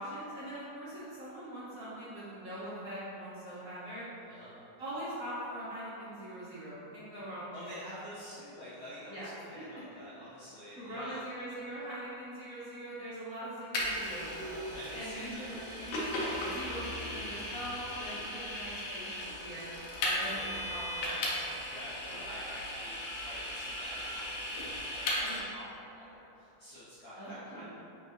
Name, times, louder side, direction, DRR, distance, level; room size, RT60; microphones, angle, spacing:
voice 1, 0.0-4.0 4.8-7.7 9.1-9.3 9.6-9.7 10.8-14.6 14.9-16.0 16.3-19.7 20.0-21.4 25.2-25.5 27.2-27.6, right 1 dB, 60° right, -10 dB, 1.0 m, -42 dB
voice 2, 7.5-11.2 14.7-15.6 20.2-20.5 21.7-25.6 25.9-27.6, equal, 50° left, -13 dB, 0.9 m, -48 dB
Vehicle, 13.7-25.4, left 1 dB, 70° left, 1.2 m, -37 dB
4.0 x 3.5 x 2.5 m, 2.8 s
omnidirectional pair, 2.1 m